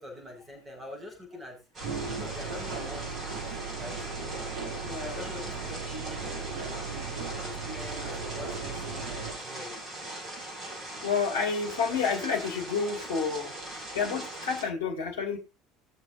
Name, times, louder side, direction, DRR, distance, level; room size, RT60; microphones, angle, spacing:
voice 1, 0.0-1.6 1.9-4.0 5.0-9.8, left 1 dB, 20° right, 5.8 m, -45 dB
sound 1, 1.7-14.6, right 1 dB, 35° right, 7.2 m, -40 dB
sound 2, 1.8-9.3, right 5 dB, 55° right, 5.4 m, -37 dB
voice 2, 4.8-5.3 10.9-15.4, left 5 dB, 70° left, 2.4 m, -30 dB
20.0 x 7.0 x 2.7 m
figure-of-eight pair, 65°, 0 cm